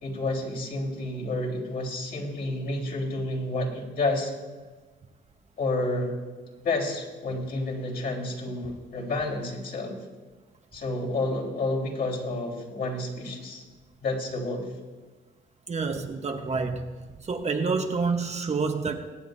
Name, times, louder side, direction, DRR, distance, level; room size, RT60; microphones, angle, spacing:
voice 1, 0.0-4.3 5.6-6.1 6.6-10.0 10.7-13.6 14.0-14.7, left 2 dB, 50° left, -3 dB, 3.8 m, -30 dB
voice 2, 15.7-16.9 17.2-19.0, right 4 dB, 35° right, 4 dB, 1.1 m, -28 dB
24.0 x 9.1 x 2.7 m, 1.3 s
cardioid pair, 90°, 20 cm